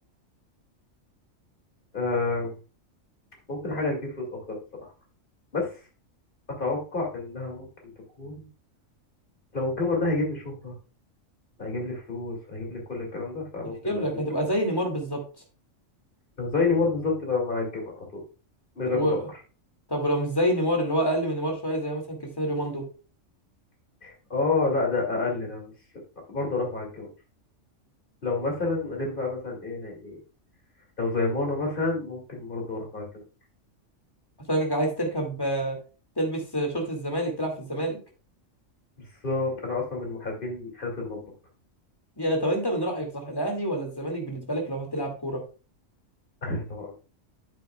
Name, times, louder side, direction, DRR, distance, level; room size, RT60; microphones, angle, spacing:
voice 1, 1.9-2.5 3.5-4.9 5.5-5.8 6.6-7.7 8.2-8.5 9.5-10.7 11.6-14.2 16.4-18.2 18.8-19.1 24.0-25.7 26.3-27.1 28.2-30.2 31.0-33.2 39.2-41.2 46.4-46.9, left 3 dB, 40° left, 0 dB, 2.7 m, -29 dB
voice 2, 13.6-15.2 18.9-19.3 19.9-22.8 34.5-35.8 36.2-38.0 42.2-45.4, equal, 15° left, 2 dB, 2.2 m, -27 dB
9.1 x 8.6 x 2.3 m, 0.34 s
omnidirectional pair, 1.4 m